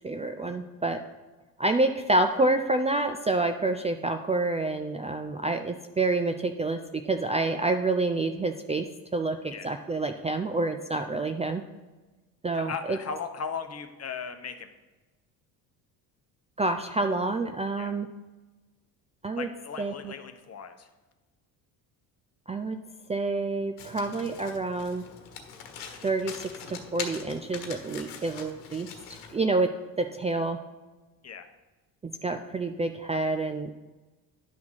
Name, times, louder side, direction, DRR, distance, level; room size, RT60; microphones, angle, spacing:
voice 1, 0.0-1.0 1.6-11.6 12.4-13.0 16.6-18.1 19.2-19.5 19.8-20.1 22.5-22.8 23.1-25.0 26.0-28.9 29.3-29.7 30.0-30.6 32.0-33.7, right 2 dB, 15° right, 7 dB, 0.4 m, -28 dB
voice 2, 12.5-14.7 17.8-18.0 19.3-20.9 31.2-31.5, left 6 dB, 35° left, 7 dB, 1.0 m, -37 dB
Domestic sounds home sounds, 23.8-29.4, left 6 dB, 85° left, 1.3 m, -42 dB
10.5 x 3.6 x 6.3 m, 1.2 s
supercardioid pair, 80°, 41 cm